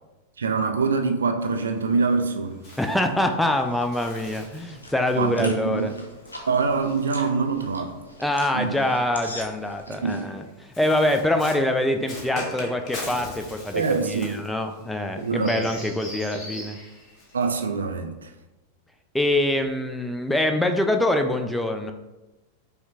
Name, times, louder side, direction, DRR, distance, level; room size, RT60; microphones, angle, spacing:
voice 1, 0.4-2.8 5.2-5.9 6.5-8.0 8.5-8.8 9.9-10.2 13.7-14.4 15.2-15.7 17.3-18.3, right 4 dB, 70° right, 0.3 m, -25 dB
Bird, 1.4-7.9 8.9-17.7, left 2 dB, 35° left, 0.9 m, -41 dB
voice 2, 2.8-5.9 8.2-16.8 19.1-21.9, left 1 dB, 5° left, 0.3 m, -24 dB
sound 1, 3.5-10.2, left 1 dB, 80° left, 0.6 m, -43 dB
5.5 x 2.2 x 2.7 m
figure-of-eight pair, 90°, 0 cm